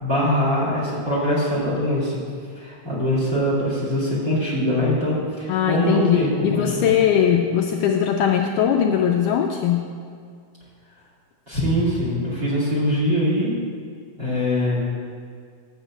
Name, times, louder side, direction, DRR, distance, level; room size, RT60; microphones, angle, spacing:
voice 1, 0.0-2.2 2.6-6.9 11.5-13.5 14.2-14.8, equal, 30° right, -5 dB, 2.1 m, -22 dB
voice 2, 5.5-9.9, left 8 dB, 80° left, 2 dB, 1.9 m, -20 dB
10.5 x 6.5 x 8.1 m, 2.1 s
omnidirectional pair, 4.1 m